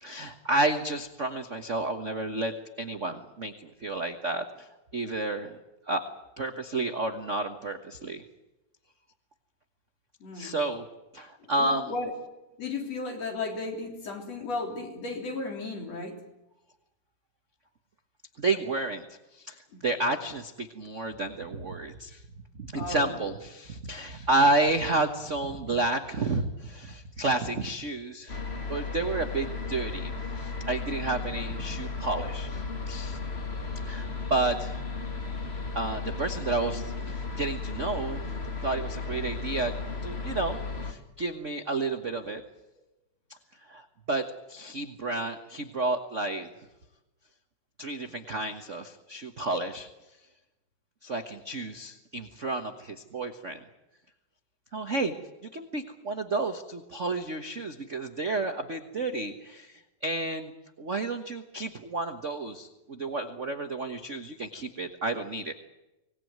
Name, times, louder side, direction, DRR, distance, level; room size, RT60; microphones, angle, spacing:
voice 1, 0.0-4.7 4.9-5.6 5.9-6.0 6.4-8.2 10.3-10.8 11.1-11.9 18.4-19.0 19.3-22.2 22.6-28.4 28.7-33.2 33.8-34.8 35.7-38.2 38.6-39.7 40.0-40.6 40.8-42.4 43.7-46.5 47.8-49.9 51.0-53.6 54.7-55.1 55.4-60.5 60.8-65.5, right 2 dB, 75° right, 6 dB, 0.6 m, -31 dB
voice 2, 10.2-10.6 11.6-12.1 12.6-16.2 19.7-19.8 22.7-23.2, left 3 dB, 55° left, 3 dB, 4.6 m, -34 dB
sound 1, 28.3-40.9, left 4 dB, 25° left, 1.6 m, -35 dB
25.0 x 19.0 x 9.4 m, 0.98 s
omnidirectional pair, 3.5 m